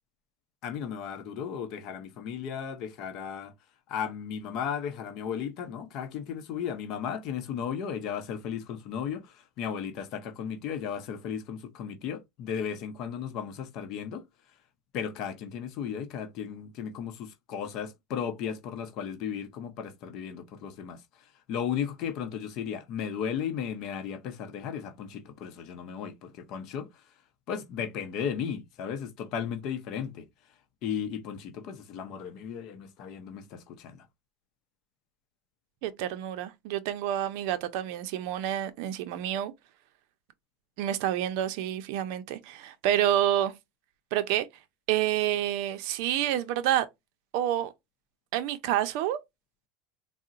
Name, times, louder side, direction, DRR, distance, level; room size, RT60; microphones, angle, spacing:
voice 1, 0.6-3.5 3.9-14.2 14.9-27.0 27.5-30.3 30.8-34.1, left 8 dB, 55° left, 0.6 m, -35 dB
voice 2, 35.8-39.5 40.8-43.5 44.1-44.5 44.9-46.9 47.3-47.7 48.3-49.2, right 12 dB, 70° right, 0.4 m, -28 dB
3.7 x 2.0 x 2.4 m
supercardioid pair, 120°, 0 cm